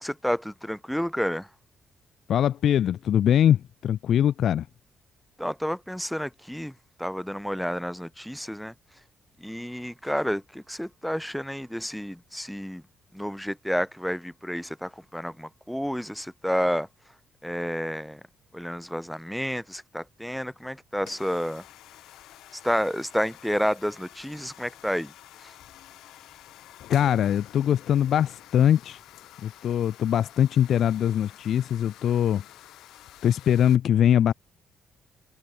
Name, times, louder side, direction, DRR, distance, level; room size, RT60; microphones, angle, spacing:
voice 1, 0.0-1.5 5.4-6.7 7.0-9.0 9.4-12.8 13.1-17.1 17.4-18.2 18.5-21.6 22.5-25.1 25.4-25.6, equal, ahead, 0.8 m, -30 dB
voice 2, 2.3-4.7 26.9-29.0 29.4-32.4 33.2-34.3, left 10 dB, 65° left, 0.9 m, -22 dB
sound 1, 21.0-33.8, left 14 dB, 85° left, 7.7 m, -49 dB
cardioid pair, 90°, 0 cm